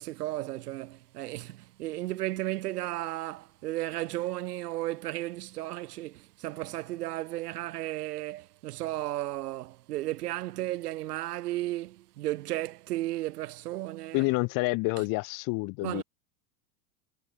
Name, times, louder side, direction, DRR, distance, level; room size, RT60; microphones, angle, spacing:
voice 1, 0.0-14.3 15.8-16.0, right 16 dB, 85° right, 2.3 m, -34 dB
voice 2, 14.1-16.0, left 26 dB, 45° left, 1.9 m, -28 dB
supercardioid pair, 145°, 45 cm